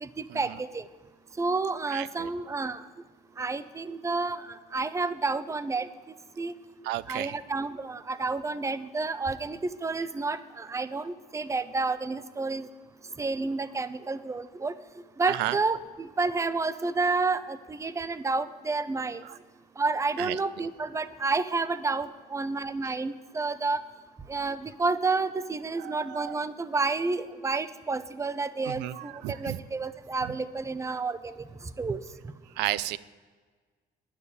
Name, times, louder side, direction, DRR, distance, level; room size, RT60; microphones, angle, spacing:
voice 1, 0.0-0.8 1.4-2.8 3.4-4.4 4.7-5.9 6.4-6.5 7.1-12.7 13.2-14.7 15.2-19.2 19.8-23.8 24.3-29.1 29.4-31.3 31.8-32.0, right 3 dB, 15° right, 14 dB, 0.6 m, -30 dB
voice 2, 1.9-2.3 6.8-7.4 15.3-15.6 19.2-19.4 20.2-20.7 22.8-23.0 25.8-26.4 28.6-29.6 30.2-30.4 30.9-31.0 32.6-33.0, right 15 dB, 90° right, 18 dB, 0.5 m, -34 dB
10.0 x 7.3 x 8.1 m, 1.4 s
cardioid pair, 110°, 17 cm